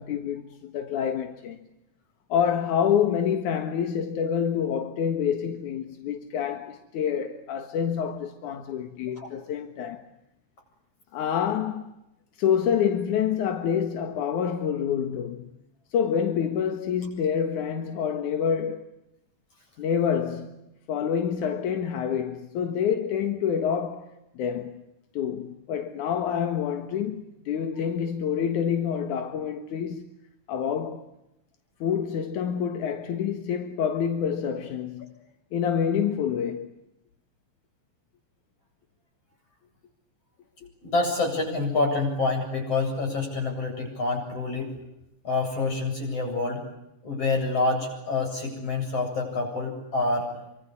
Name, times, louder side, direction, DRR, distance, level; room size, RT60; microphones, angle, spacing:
voice 1, 0.0-1.7 2.3-10.1 11.1-11.9 12.4-15.5 15.9-18.9 19.8-20.6 20.9-24.8 25.1-30.1 30.5-31.1 31.8-35.1 35.5-36.7 40.6-40.7, left 8 dB, 85° left, 3.0 m, -27 dB
voice 2, 40.8-44.7 45.2-46.7 47.0-50.3, left 3 dB, 55° left, 9.1 m, -27 dB
28.5 x 24.5 x 8.3 m
omnidirectional pair, 3.4 m